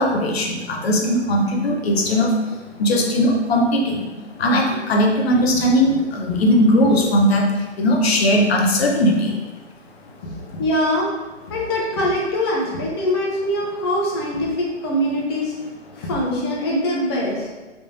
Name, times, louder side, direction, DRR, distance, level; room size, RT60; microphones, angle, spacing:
voice 1, 0.0-2.3 2.8-4.1 4.4-7.5 7.8-9.3, equal, 60° left, 0 dB, 0.8 m, -18 dB
voice 2, 10.6-11.1 11.5-15.5 16.0-17.5, left 1 dB, 20° left, -2 dB, 0.5 m, -22 dB
3.5 x 3.3 x 2.6 m, 1.2 s
figure-of-eight pair, 135°, 36 cm